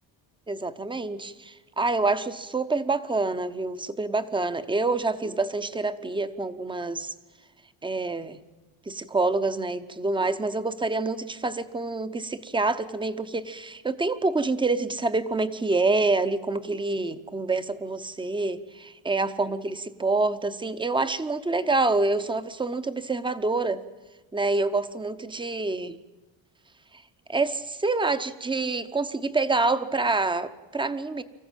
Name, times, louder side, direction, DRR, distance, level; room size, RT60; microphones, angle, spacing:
voice 1, 0.5-7.1 7.8-8.4 8.9-23.8 24.3-26.0 27.3-31.2, right 3 dB, 10° right, 12 dB, 0.7 m, -27 dB
25.0 x 15.0 x 9.0 m, 1.2 s
cardioid pair, 145°, 46 cm